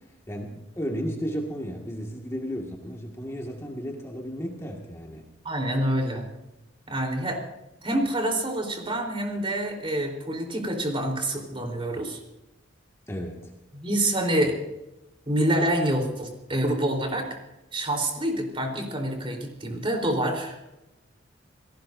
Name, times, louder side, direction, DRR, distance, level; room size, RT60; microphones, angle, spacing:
voice 1, 0.3-5.2 13.1-13.5, equal, 15° left, 0 dB, 2.0 m, -33 dB
voice 2, 5.4-6.2 6.9-7.4 7.8-12.2 13.7-14.6 15.3-17.3 17.7-20.6, right 1 dB, 30° right, 2 dB, 3.9 m, -27 dB
28.5 x 18.0 x 2.7 m, 0.98 s
head